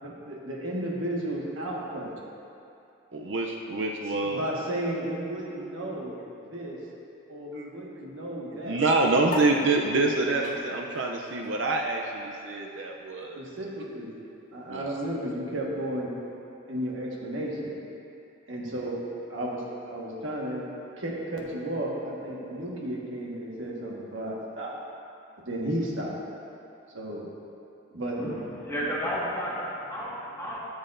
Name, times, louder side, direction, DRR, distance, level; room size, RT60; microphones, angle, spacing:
voice 1, 0.0-2.2 4.2-6.8 7.3-8.8 13.3-14.1 14.5-16.2 16.7-17.7 18.5-19.0 19.3-19.6 19.9-20.7 21.0-24.8 25.4-26.2 26.9-27.3 27.9-28.2, right 1 dB, 90° right, -3 dB, 1.5 m, -33 dB
voice 2, 3.1-4.4 7.5-7.7 8.7-13.4 14.7-14.9, right 3 dB, 75° right, 1 dB, 0.5 m, -26 dB
sound 1, 9.3-16.1, left 2 dB, 45° left, 0.8 m, -45 dB
voice 3, 28.2-30.6, equal, 15° left, -8 dB, 1.7 m, -32 dB
14.0 x 7.2 x 2.6 m, 2.7 s
head